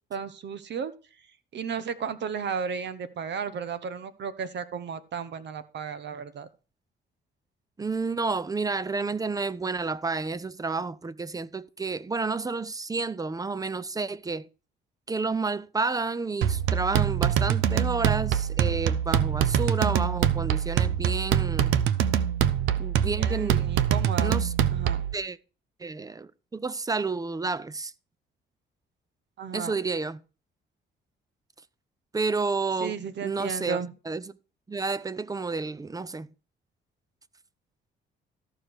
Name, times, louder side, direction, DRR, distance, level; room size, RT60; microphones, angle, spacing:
voice 1, 0.1-0.9 1.5-6.5 23.1-24.4 24.7-25.0 29.4-29.7 32.8-33.9, right 6 dB, 60° right, 1.2 m, -34 dB
voice 2, 7.8-14.5 15.1-21.8 22.8-23.6 24.2-24.5 25.1-25.4 25.8-27.9 29.5-30.2 32.1-33.8 34.1-34.2 34.7-36.3, right 4 dB, 20° right, 0.6 m, -30 dB
sound 1, 16.4-25.1, right 9 dB, 90° right, 0.7 m, -24 dB
13.5 x 5.0 x 6.3 m
cardioid pair, 90°, 20 cm